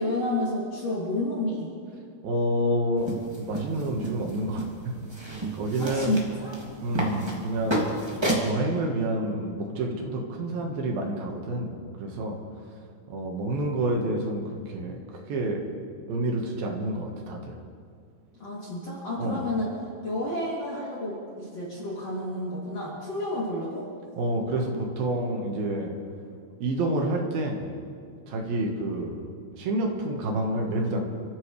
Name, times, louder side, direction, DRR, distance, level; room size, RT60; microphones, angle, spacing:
voice 1, 0.0-1.7 5.8-6.6 18.4-19.7 20.0-23.9, left 1 dB, 35° left, -7 dB, 3.5 m, -30 dB
voice 2, 2.2-3.1 3.4-4.9 5.2-6.2 6.8-7.9 8.4-11.7 12.0-12.4 13.1-15.0 15.3-15.6 16.1-17.6 19.2-19.4 24.2-25.9 26.6-27.6 28.3-29.2 29.6-31.1, right 1 dB, 65° right, 1 dB, 2.9 m, -28 dB
sound 1, 3.0-8.5, right 1 dB, 10° right, 1.1 m, -32 dB
29.5 x 14.5 x 3.3 m, 2.3 s
omnidirectional pair, 5.2 m